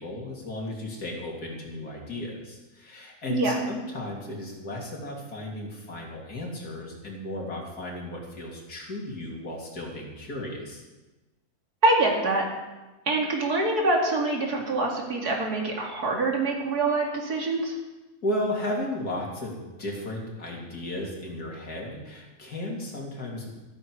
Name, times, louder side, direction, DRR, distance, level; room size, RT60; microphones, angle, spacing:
voice 1, 0.0-10.8 18.2-23.5, left 1 dB, 80° left, -2 dB, 3.4 m, -34 dB
voice 2, 3.3-3.6 11.8-12.4 13.1-17.8, right 2 dB, 80° right, 0 dB, 2.9 m, -25 dB
14.0 x 13.5 x 4.8 m, 1.1 s
omnidirectional pair, 1.6 m